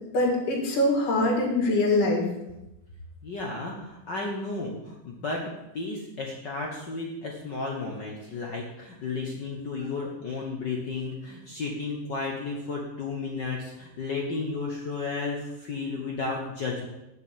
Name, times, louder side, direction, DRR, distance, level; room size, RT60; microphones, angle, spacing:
voice 1, 0.1-2.3, left 1 dB, 75° left, -2 dB, 3.8 m, -23 dB
voice 2, 3.2-16.9, left 3 dB, 60° left, -1 dB, 1.1 m, -33 dB
7.8 x 7.0 x 7.4 m, 0.91 s
omnidirectional pair, 3.7 m